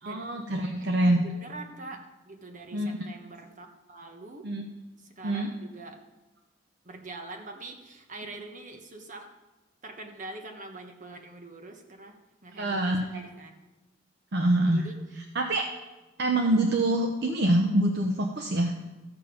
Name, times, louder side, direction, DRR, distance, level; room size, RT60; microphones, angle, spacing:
voice 1, 0.0-1.2 2.7-3.0 4.4-4.6 5.2-5.5 12.5-13.1 14.3-14.9 15.3-15.7 16.2-18.8, right 1 dB, 60° right, 3 dB, 0.8 m, -25 dB
voice 2, 0.8-4.5 5.0-6.0 6.8-9.3 9.8-13.5 14.6-15.0, right 2 dB, 40° right, 4 dB, 1.3 m, -44 dB
14.0 x 7.0 x 5.2 m, 1.1 s
head